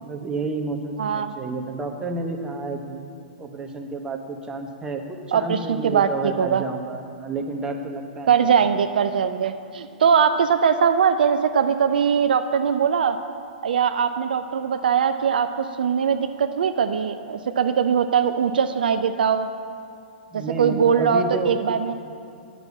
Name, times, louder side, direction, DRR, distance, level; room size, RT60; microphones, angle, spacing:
voice 1, 0.0-3.0 3.4-8.5 20.3-21.6, right 3 dB, 15° right, 3 dB, 1.1 m, -30 dB
voice 2, 1.0-1.3 5.3-6.6 8.3-13.2 13.6-19.5 20.3-21.9, right 7 dB, 65° right, 9 dB, 0.5 m, -21 dB
9.5 x 6.9 x 8.2 m, 2.4 s
figure-of-eight pair, 110°, 5 cm